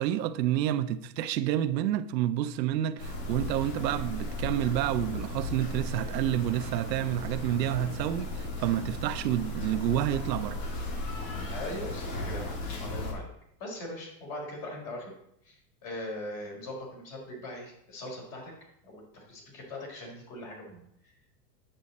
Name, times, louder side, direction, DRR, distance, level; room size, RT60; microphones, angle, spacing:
voice 1, 0.0-10.6, right 12 dB, 80° right, 0.8 m, -29 dB
sound 1, 3.0-13.1, left 2 dB, 75° left, 3.0 m, -36 dB
voice 2, 11.5-13.3 13.6-15.1 15.4-18.5 18.8-20.8, left 1 dB, 40° left, 4.5 m, -40 dB
9.9 x 7.8 x 4.1 m
supercardioid pair, 145°, 50 cm